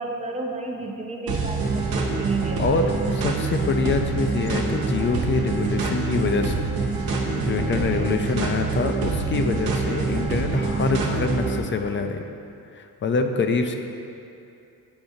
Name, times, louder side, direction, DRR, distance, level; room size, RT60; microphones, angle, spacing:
voice 1, 0.0-2.8 7.7-8.2, right 3 dB, 20° right, 1 dB, 0.5 m, -32 dB
sound 1, 1.3-11.6, right 4 dB, 75° right, 0.9 m, -25 dB
voice 2, 2.6-2.9 3.2-6.6 7.4-12.2 12.7-13.8, left 4 dB, 35° left, 5 dB, 0.4 m, -25 dB
8.7 x 4.7 x 2.7 m, 2.7 s
cardioid pair, 115°, 37 cm